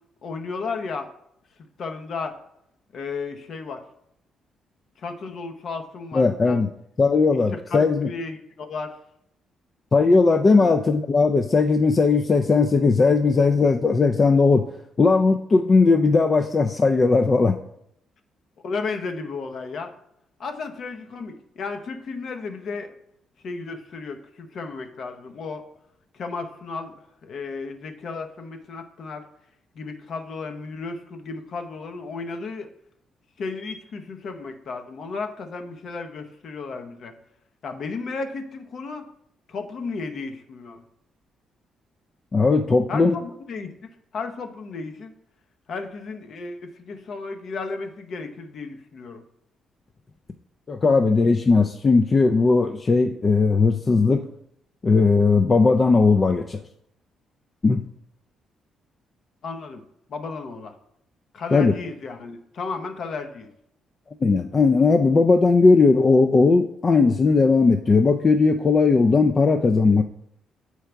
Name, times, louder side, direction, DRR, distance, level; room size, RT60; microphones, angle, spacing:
voice 1, 0.2-1.1 1.8-2.4 2.9-3.8 5.0-6.6 7.5-8.9 10.5-10.9 18.6-19.9 20.4-22.9 23.4-25.6 26.1-26.9 27.2-29.2 29.7-32.7 33.4-37.1 37.6-39.1 39.5-40.8 42.9-45.1 45.7-49.2 59.4-59.8 60.1-60.7 61.3-63.5, left 4 dB, 60° left, 6 dB, 0.8 m, -34 dB
voice 2, 6.1-6.7 7.0-8.1 9.9-14.7 15.0-17.6 42.3-43.2 50.7-54.2 54.8-56.6 57.6-57.8 61.5-61.7 64.2-70.0, left 4 dB, 35° left, 6 dB, 0.4 m, -18 dB
7.8 x 4.6 x 3.4 m, 0.76 s
cardioid pair, 90°, 0 cm